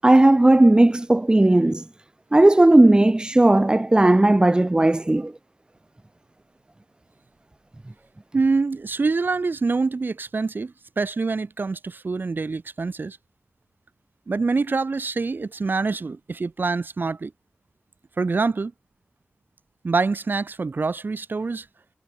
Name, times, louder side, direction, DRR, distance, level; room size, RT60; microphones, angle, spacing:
voice 1, 0.0-1.8 2.3-5.3, right 1 dB, 25° right, 1.4 m, -16 dB
voice 2, 8.3-13.2 14.3-17.3 18.2-18.7 19.8-21.7, right 4 dB, 60° right, 4.6 m, -25 dB
wide cardioid pair, 65°, 4 cm